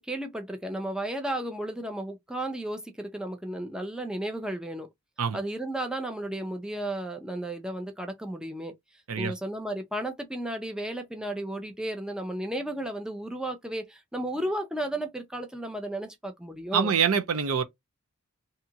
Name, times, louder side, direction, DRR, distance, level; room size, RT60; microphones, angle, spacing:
voice 1, 0.0-4.9 5.3-8.7 9.2-16.9, right 1 dB, 5° right, 0.5 m, -33 dB
voice 2, 16.7-17.6, right 6 dB, 90° right, 0.6 m, -25 dB
2.8 x 2.4 x 2.7 m
head